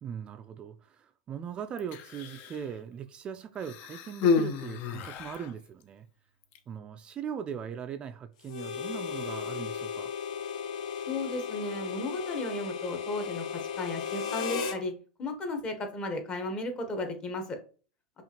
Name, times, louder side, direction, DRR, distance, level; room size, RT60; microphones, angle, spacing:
voice 1, 0.0-6.1 6.7-10.1, right 8 dB, 30° right, 0.3 m, -39 dB
Human voice, 1.8-2.7 3.6-5.5 6.4-6.6, left 5 dB, 50° left, 0.5 m, -30 dB
Harmonica, 8.5-14.8, left 7 dB, 80° left, 0.8 m, -35 dB
voice 2, 11.1-14.9 15.2-17.6, left 2 dB, 30° left, 1.0 m, -34 dB
5.5 x 2.5 x 2.9 m
supercardioid pair, 125°, 4 cm